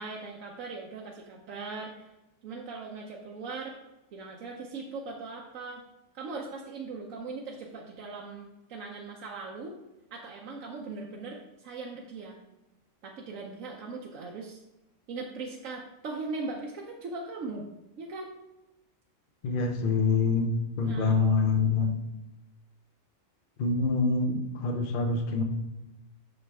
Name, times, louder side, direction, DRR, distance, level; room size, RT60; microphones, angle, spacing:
voice 1, 0.0-2.1 2.4-3.8 4.1-5.8 6.1-9.8 10.1-12.4 13.0-14.6 15.1-17.7 18.0-18.3 20.8-21.2, right 3 dB, 85° right, -1 dB, 1.1 m, -39 dB
voice 2, 19.4-20.5 20.8-21.9 23.6-25.4, left 4 dB, 50° left, 6 dB, 0.8 m, -25 dB
6.3 x 6.2 x 3.5 m, 0.96 s
omnidirectional pair, 1.3 m